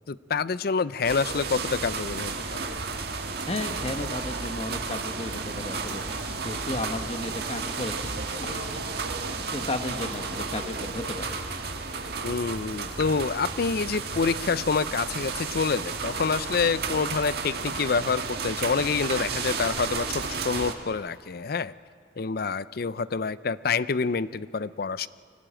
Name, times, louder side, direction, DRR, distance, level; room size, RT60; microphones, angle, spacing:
voice 1, 0.1-2.7 12.2-21.7 22.2-25.1, left 5 dB, 55° left, 17 dB, 0.5 m, -27 dB
sound 1, 1.0-20.7, right 4 dB, 60° right, 1.9 m, -33 dB
voice 2, 3.5-8.7 9.5-11.4, left 2 dB, 35° left, 7 dB, 1.4 m, -34 dB
24.5 x 17.5 x 9.0 m, 2.3 s
head